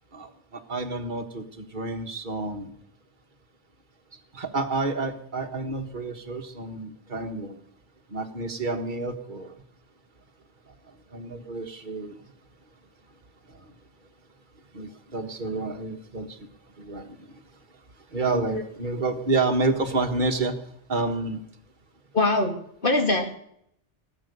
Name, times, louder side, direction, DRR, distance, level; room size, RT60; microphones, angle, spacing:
voice 1, 0.1-2.7 4.3-7.6 8.1-9.5 11.1-12.2 14.7-16.4 16.8-17.2 18.1-20.6 20.9-21.4, right 3 dB, 40° right, 5 dB, 1.5 m, -29 dB
voice 2, 22.1-23.4, left 2 dB, 45° left, 4 dB, 2.2 m, -24 dB
18.5 x 8.5 x 6.7 m, 0.70 s
omnidirectional pair, 1.2 m